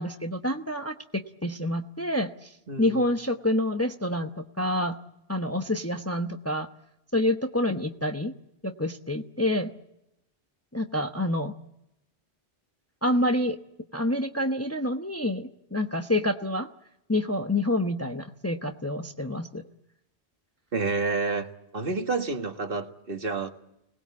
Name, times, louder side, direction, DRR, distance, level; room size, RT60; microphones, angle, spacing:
voice 1, 0.0-5.0 5.3-6.7 7.1-8.3 8.6-9.7 10.7-11.5 13.0-13.6 13.9-16.7 17.1-19.6, left 1 dB, 15° left, 5 dB, 0.9 m, -27 dB
voice 2, 2.7-3.1 20.7-21.5 21.7-23.5, right 3 dB, 55° right, 6 dB, 1.8 m, -29 dB
25.5 x 19.5 x 8.3 m, 0.86 s
omnidirectional pair, 1.1 m